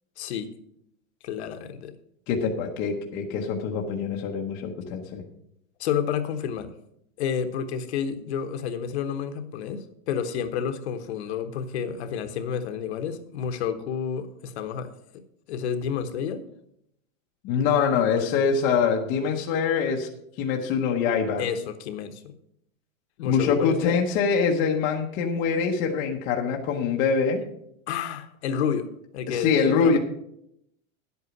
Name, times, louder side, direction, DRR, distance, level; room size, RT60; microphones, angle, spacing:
voice 1, 0.2-0.5 1.2-1.9 5.8-6.7 7.2-14.9 15.5-16.4 18.1-18.3 21.4-22.3 23.2-24.0 27.9-30.0, left 7 dB, 50° left, 9 dB, 1.1 m, -30 dB
voice 2, 2.3-5.2 17.4-20.1 20.4-21.4 23.2-27.4 29.3-30.0, left 6 dB, 20° left, 1 dB, 0.8 m, -24 dB
10.5 x 8.3 x 5.8 m, 0.75 s
supercardioid pair, 175°, 42 cm